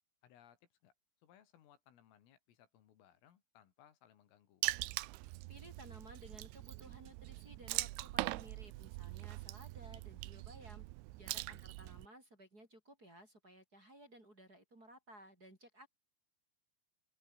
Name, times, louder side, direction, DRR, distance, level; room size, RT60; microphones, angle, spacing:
voice 1, 0.2-0.9 1.2-4.7 11.5-11.7, left 10 dB, 80° left, 5.2 m, -66 dB
Water / Splash splatter, 4.6-12.1, right 20 dB, 85° right, 2.9 m, -42 dB
voice 2, 5.2-10.8 11.2-15.9, right 1 dB, 20° right, 4.9 m, -57 dB
open air
omnidirectional pair, 5.9 m